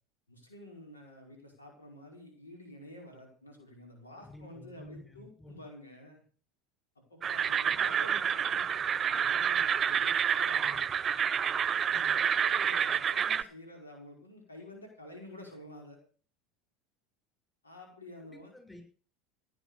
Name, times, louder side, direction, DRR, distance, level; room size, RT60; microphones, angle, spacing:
voice 1, 0.3-6.2 7.1-11.2 11.8-16.0 17.6-18.5, left 1 dB, 90° left, 1 dB, 5.3 m, -50 dB
voice 2, 4.1-5.7 10.6-10.8 11.9-12.2 18.2-18.8, left 2 dB, 10° left, 4 dB, 6.5 m, -52 dB
sound 1, 7.2-13.4, right 8 dB, 35° right, 0.9 m, -28 dB
16.5 x 9.7 x 6.9 m, 0.42 s
hypercardioid pair, 75°, 0 cm